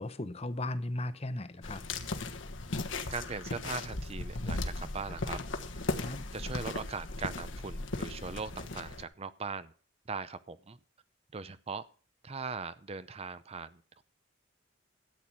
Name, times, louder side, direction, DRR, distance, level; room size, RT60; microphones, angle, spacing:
voice 1, 0.0-1.8 6.0-6.2, left 1 dB, 30° left, 0.8 m, -36 dB
sound 1, 1.6-9.0, left 2 dB, 80° left, 1.4 m, -37 dB
voice 2, 3.1-5.4 6.3-9.7 10.1-10.8 11.3-11.9 12.2-14.0, right 4 dB, 30° right, 0.6 m, -40 dB
13.0 x 8.7 x 6.1 m
head